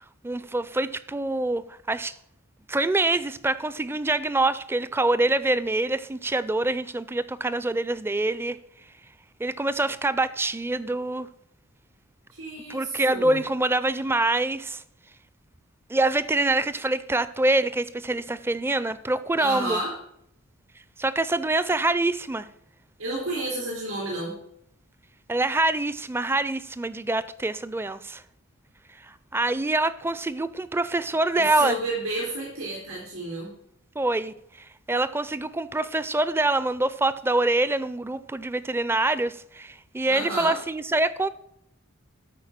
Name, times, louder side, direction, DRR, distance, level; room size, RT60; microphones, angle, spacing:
voice 1, 0.2-2.1 2.7-8.6 9.4-11.3 12.7-14.8 15.9-19.8 21.0-22.5 25.3-28.2 29.3-31.8 34.0-34.3 34.9-41.3, right 2 dB, 10° right, 0.4 m, -25 dB
voice 2, 12.4-13.4 19.4-19.9 23.0-24.3 31.3-33.5 40.1-40.6, right 2 dB, 75° right, 4.3 m, -31 dB
13.0 x 4.7 x 7.4 m
head